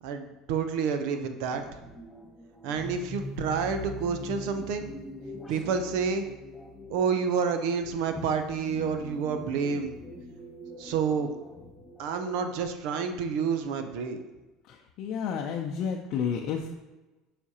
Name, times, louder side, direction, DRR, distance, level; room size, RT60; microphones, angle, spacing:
voice 1, 0.0-1.8 2.6-5.0 5.5-6.3 6.9-9.9 10.8-11.4 12.0-14.2, right 6 dB, 70° right, 7 dB, 0.6 m, -29 dB
sound 1, 1.4-12.7, left 1 dB, 10° left, 1.5 m, -43 dB
voice 2, 15.0-16.7, left 7 dB, 60° left, 1 dB, 0.5 m, -30 dB
7.2 x 5.0 x 2.8 m, 1.1 s
supercardioid pair, 85°, 0 cm